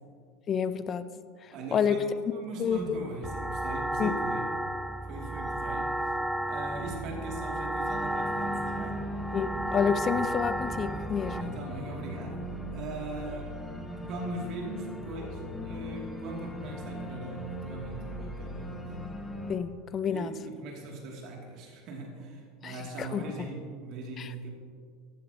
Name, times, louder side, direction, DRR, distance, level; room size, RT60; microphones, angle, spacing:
voice 1, 0.5-1.1 1.7-2.0 2.6-3.1 4.0-4.1 9.3-11.5 19.5-20.3 22.6-22.7 23.0-23.2 24.2-24.3, left 7 dB, 40° left, 14 dB, 0.6 m, -29 dB
voice 2, 1.5-2.0 2.3-4.5 5.1-6.2 6.5-9.0 11.2-12.4 12.7-13.6 14.1-19.0 20.1-24.5, right 3 dB, 55° right, 0 dB, 2.6 m, -40 dB
Organ, 2.7-19.5, left 1 dB, 10° left, 1.4 m, -41 dB
sound 1, 3.2-11.4, right 1 dB, 5° right, 0.6 m, -33 dB
15.0 x 11.5 x 2.9 m, 2.1 s
hypercardioid pair, 80°, 0 cm